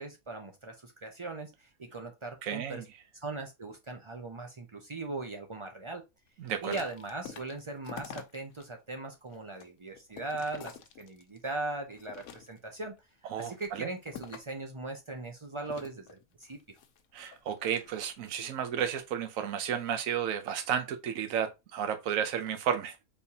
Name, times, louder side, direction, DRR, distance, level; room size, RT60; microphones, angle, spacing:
voice 1, 0.0-2.8 3.1-6.0 6.6-12.9 13.3-16.6, right 2 dB, 50° right, 0.3 m, -39 dB
voice 2, 2.4-2.8 6.4-6.8 13.3-13.9 17.1-23.0, right 8 dB, 75° right, 1.1 m, -32 dB
sound 1, 6.4-8.7 9.1-11.4 11.9-12.8 13.3-14.6 15.6-18.3 18.8-19.1, left 8 dB, 90° left, 1.1 m, -48 dB
4.4 x 3.4 x 2.8 m
omnidirectional pair, 1.4 m